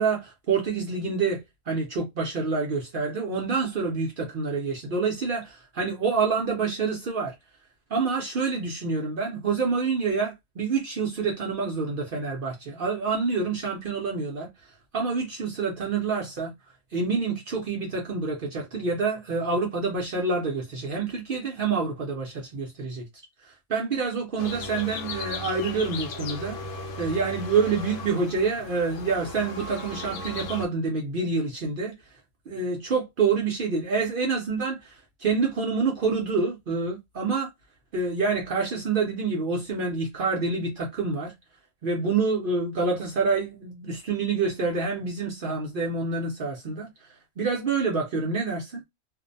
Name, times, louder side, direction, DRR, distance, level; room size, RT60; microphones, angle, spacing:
voice 1, 0.0-7.3 7.9-14.5 14.9-16.5 16.9-23.1 23.4-31.9 32.5-37.5 37.9-41.3 41.8-46.9 47.4-48.8, right 4 dB, 55° right, 0.6 m, -27 dB
sound 1, 24.4-30.7, left 3 dB, 80° left, 1.0 m, -36 dB
2.5 x 2.0 x 2.5 m
omnidirectional pair, 1.3 m